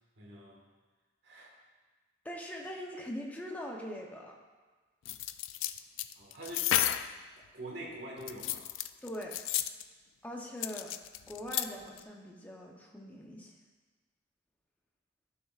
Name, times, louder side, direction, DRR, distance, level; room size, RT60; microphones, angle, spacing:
voice 1, 0.2-0.6 1.2-1.5 6.1-6.7 7.4-8.7, right 1 dB, 55° right, -3 dB, 1.7 m, -45 dB
voice 2, 2.2-4.3 9.0-9.3 10.2-10.9 11.3-13.5, equal, 10° left, -1 dB, 0.8 m, -42 dB
sound 1, 5.0-7.1 8.2-9.8 10.6-11.7 12.0-12.1, left 12 dB, 75° left, 0.3 m, -32 dB
11.5 x 6.2 x 2.5 m, 1.3 s
head